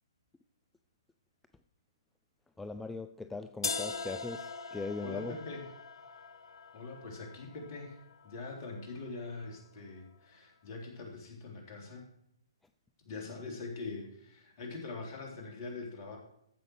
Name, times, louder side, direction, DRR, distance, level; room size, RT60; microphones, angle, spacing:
voice 1, 2.6-5.3, left 3 dB, 5° left, 0.4 m, -40 dB
sound 1, 3.6-9.6, left 4 dB, 65° left, 1.0 m, -42 dB
voice 2, 5.0-5.7 6.7-12.1 13.1-16.2, left 3 dB, 35° left, 3.5 m, -43 dB
14.5 x 5.4 x 6.3 m
figure-of-eight pair, 130°, 3 cm